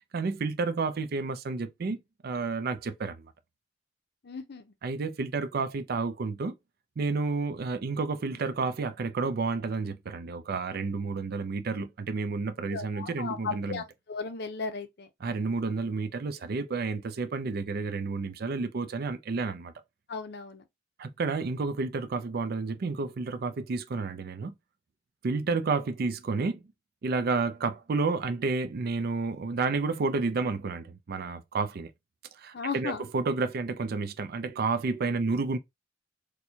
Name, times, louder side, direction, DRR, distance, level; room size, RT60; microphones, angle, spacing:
voice 1, 0.1-3.3 4.8-6.6 7.0-13.8 15.2-19.7 21.0-24.5 25.2-26.6 27.0-31.9 32.3-35.6, right 4 dB, 55° right, 0.4 m, -30 dB
voice 2, 4.2-4.6 12.7-15.1 20.1-20.6 32.5-33.0, left 5 dB, 60° left, 0.6 m, -36 dB
4.4 x 2.2 x 2.7 m
head